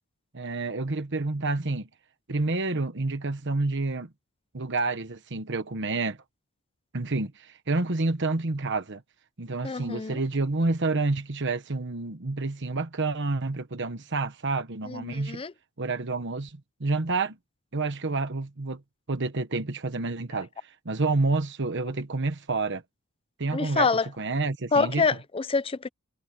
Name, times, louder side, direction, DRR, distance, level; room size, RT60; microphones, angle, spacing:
voice 1, 0.3-1.9 2.3-4.1 4.5-6.2 6.9-9.0 9.4-15.4 15.8-17.4 17.7-18.8 19.1-22.8 23.4-23.9 24.2-25.0, right 3 dB, 55° right, 1.2 m, -29 dB
voice 2, 9.6-10.2 14.9-15.5 23.5-24.1 24.7-25.9, left 4 dB, 25° left, 0.5 m, -26 dB
head